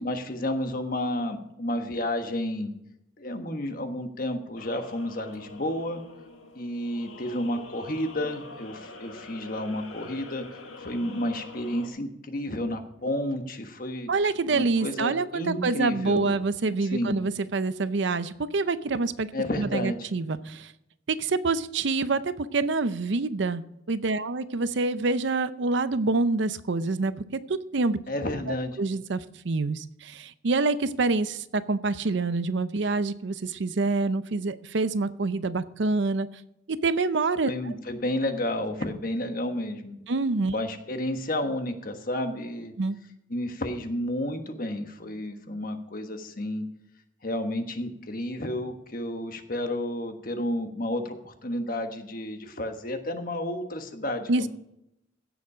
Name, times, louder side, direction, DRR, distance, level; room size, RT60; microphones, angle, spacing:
voice 1, 0.0-2.7 3.2-6.0 6.5-14.1 14.5-16.3 16.9-17.2 19.3-20.1 28.1-28.8 37.5-40.0 40.4-42.7 43.3-46.6 47.2-54.5, left 1 dB, 45° left, 6 dB, 1.3 m, -31 dB
sound 1, 4.6-11.9, left 3 dB, 85° left, 1.8 m, -45 dB
voice 2, 14.1-19.3 19.6-20.7 21.1-28.0 28.5-36.3 36.7-37.5 40.1-40.5 42.8-43.0 54.3-54.5, right 3 dB, 65° right, 14 dB, 0.6 m, -26 dB
16.0 x 7.1 x 5.0 m, 0.83 s
head